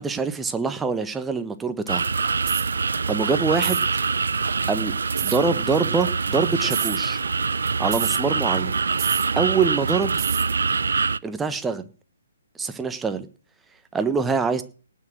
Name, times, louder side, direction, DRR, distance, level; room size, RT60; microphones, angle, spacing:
voice 1, 0.0-2.0 3.1-3.8 4.7-4.9 5.2-7.2 7.8-8.7 9.3-10.2 11.2-11.9 12.6-13.3 13.9-14.6, right 5 dB, 10° right, 9 dB, 1.2 m, -24 dB
sound 1, 1.9-11.2, right 5 dB, 70° right, 0.6 m, -24 dB
sound 2, 2.4-2.7 3.6-3.9 5.2-5.4 6.6-7.0 7.9-8.2 9.0-9.3 10.2-10.5, right 16 dB, 30° right, 0.7 m, -29 dB
18.5 x 6.3 x 7.5 m, 0.40 s
figure-of-eight pair, 135°, 0 cm